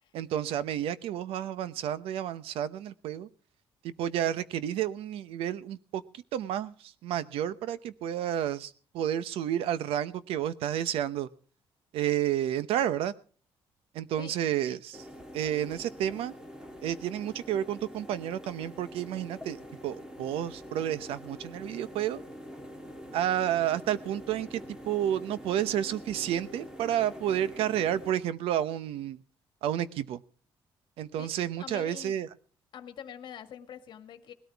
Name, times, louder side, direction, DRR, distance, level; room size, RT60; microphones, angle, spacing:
voice 1, 0.1-3.3 3.8-11.3 11.9-13.1 13.9-15.0 15.3-16.3 16.8-22.2 23.1-29.2 29.6-30.2 31.0-32.3, right 11 dB, 85° right, 15 dB, 0.8 m, -31 dB
sound 1, 14.9-28.1, equal, 5° right, 1.7 m, -45 dB
voice 2, 31.6-32.1 32.7-34.3, left 9 dB, 55° left, 9 dB, 1.6 m, -44 dB
19.5 x 13.5 x 3.5 m, 0.41 s
cardioid pair, 150°, 9 cm